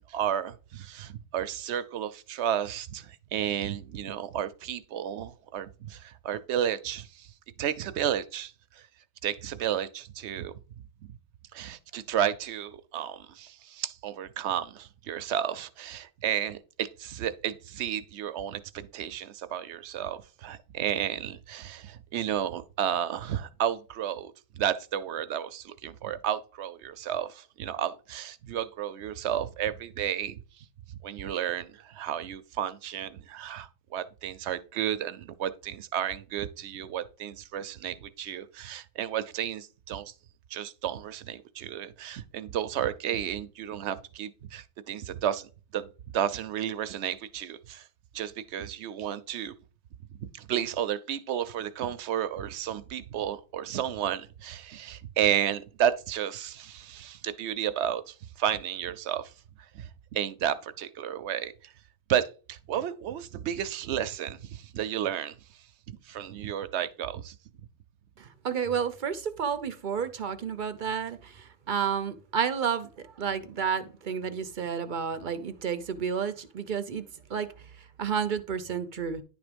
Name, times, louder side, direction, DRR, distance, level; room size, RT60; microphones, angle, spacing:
voice 1, 0.1-7.3 7.6-8.8 9.2-10.5 11.0-11.2 11.5-30.4 31.0-40.1 40.5-47.9 48.1-49.5 50.1-59.3 59.7-61.7 62.1-65.4 65.9-67.4, right 10 dB, 80° right, 0.9 m, -32 dB
voice 2, 68.2-77.0 77.3-77.5 78.0-79.2, right 7 dB, 55° right, 0.7 m, -31 dB
10.5 x 3.5 x 5.1 m
omnidirectional pair, 1.1 m